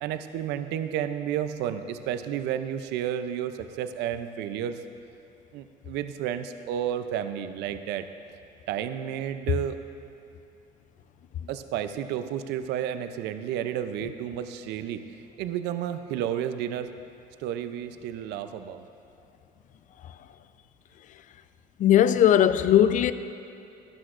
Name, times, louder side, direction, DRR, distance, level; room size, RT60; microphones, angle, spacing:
voice 1, 0.0-4.8 5.5-8.1 8.7-9.8 11.5-15.0 15.4-16.9 17.4-18.8, right 10 dB, 85° right, 0.5 m, -31 dB
voice 2, 21.8-23.1, left 10 dB, 50° left, 0.4 m, -18 dB
13.0 x 12.0 x 2.5 m
cardioid pair, 110°, 17 cm